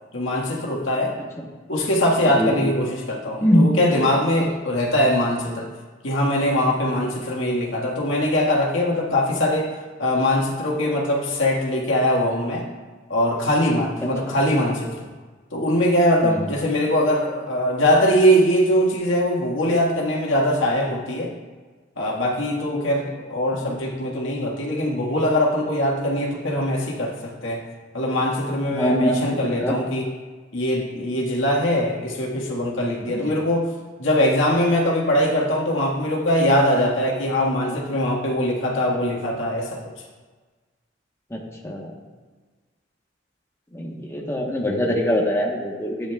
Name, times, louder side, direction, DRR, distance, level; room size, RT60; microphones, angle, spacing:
voice 1, 0.1-1.1 1.7-5.7 6.0-9.7 10.0-12.7 13.1-15.1 15.5-21.3 22.0-27.6 27.9-30.1 30.5-33.7 34.0-39.8, equal, 80° left, -2 dB, 1.6 m, -22 dB
voice 2, 3.4-3.7 4.4-4.5 14.2-14.4 16.2-16.5 28.7-29.7 33.1-33.3 41.3-41.9 43.7-46.1, equal, 15° left, -2 dB, 1.1 m, -23 dB
14.0 x 9.1 x 2.3 m, 1.4 s
head